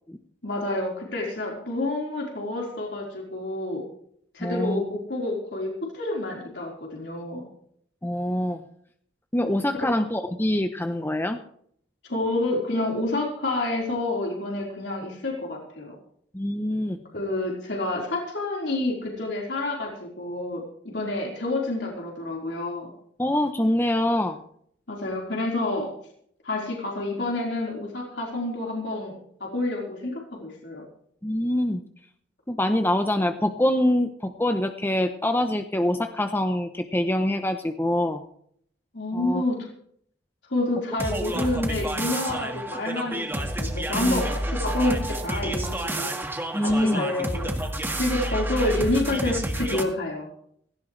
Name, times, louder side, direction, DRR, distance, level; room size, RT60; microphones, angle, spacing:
voice 1, 0.4-3.8 4.3-7.4 12.0-15.9 17.1-22.9 24.9-25.9 26.4-30.8 38.9-39.6 40.5-46.1 46.6-47.5 48.0-50.3, left 2 dB, 70° left, -2 dB, 4.3 m, -28 dB
voice 2, 4.4-4.8 8.0-8.6 9.3-11.4 16.3-17.0 23.2-24.4 31.2-31.8 32.5-38.2 39.1-39.4 43.9-44.2 46.5-47.1, left 1 dB, 10° left, 7 dB, 0.8 m, -25 dB
sound 1, 41.0-49.8, right 1 dB, 10° right, 1.7 m, -29 dB
17.0 x 16.0 x 3.3 m, 0.65 s
head